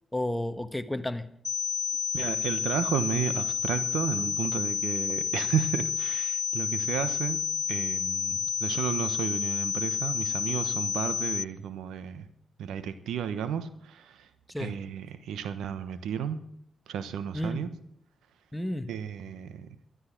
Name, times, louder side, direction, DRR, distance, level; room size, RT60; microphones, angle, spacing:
voice 1, 0.1-1.3 14.5-14.8 17.3-17.7 18.5-18.9, left 1 dB, 10° left, 1.3 m, -31 dB
sound 1, 1.4-11.4, left 7 dB, 60° left, 0.7 m, -30 dB
voice 2, 2.1-12.3 12.6-14.3 14.6-16.4 16.9-17.7 18.9-19.7, right 8 dB, 85° right, 1.1 m, -33 dB
13.0 x 13.0 x 6.0 m
supercardioid pair, 60°, 0 cm